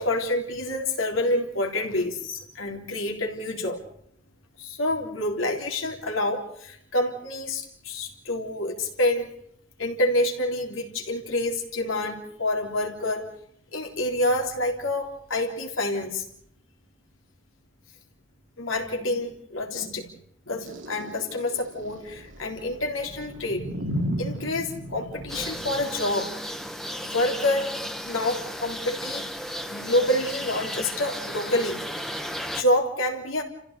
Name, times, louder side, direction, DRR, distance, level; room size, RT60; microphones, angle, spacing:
voice 1, 0.0-3.8 4.6-9.3 9.8-13.3 13.7-16.2 18.6-20.1 20.5-23.7 24.2-26.3 27.0-27.7 28.0-29.3 29.7-31.8 32.5-33.4, left 1 dB, 85° left, 1 dB, 3.8 m, -27 dB
sound 1, 20.7-25.9, equal, 75° right, 2.4 m, -35 dB
sound 2, 25.3-32.6, equal, ahead, 1.2 m, -34 dB
29.5 x 15.5 x 6.8 m, 0.70 s
head